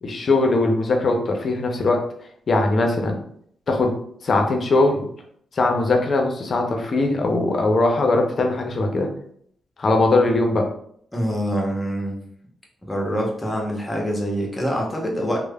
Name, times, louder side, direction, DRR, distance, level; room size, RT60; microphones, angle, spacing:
voice 1, 0.0-2.0 2.5-3.2 3.7-3.9 4.2-5.0 5.5-9.1 9.8-10.7, left 2 dB, 55° left, 3 dB, 0.5 m, -20 dB
voice 2, 11.1-12.2 12.8-15.4, equal, 20° left, 0 dB, 0.8 m, -25 dB
3.1 x 2.0 x 2.2 m, 0.65 s
supercardioid pair, 55°, 0 cm